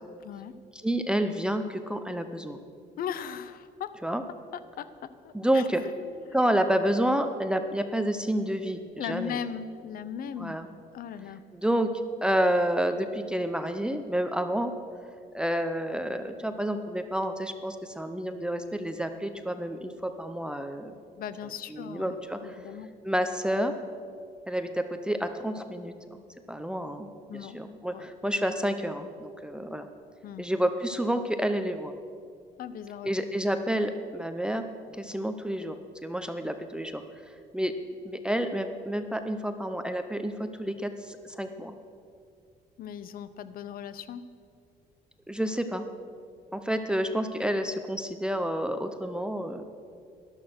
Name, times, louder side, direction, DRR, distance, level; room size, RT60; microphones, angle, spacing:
voice 1, 0.7-2.6 4.0-4.2 5.3-5.8 6.3-9.4 10.4-10.7 11.5-11.9 12.2-14.7 15.3-20.9 21.7-22.6 23.0-23.7 24.5-26.2 26.5-29.9 30.4-31.9 33.0-34.6 35.0-35.8 36.0-37.7 38.0-41.7 45.3-45.9 46.5-49.6, right 1 dB, 5° right, 8 dB, 0.7 m, -29 dB
voice 2, 3.0-3.9 4.5-6.2 9.0-10.6 10.9-11.4 21.2-22.1 22.4-22.9 27.3-27.6 27.9-28.1 30.2-30.4 32.6-33.1 42.8-44.2, left 8 dB, 60° left, 14 dB, 0.8 m, -38 dB
12.5 x 11.5 x 6.1 m, 2.3 s
cardioid pair, 110°, 17 cm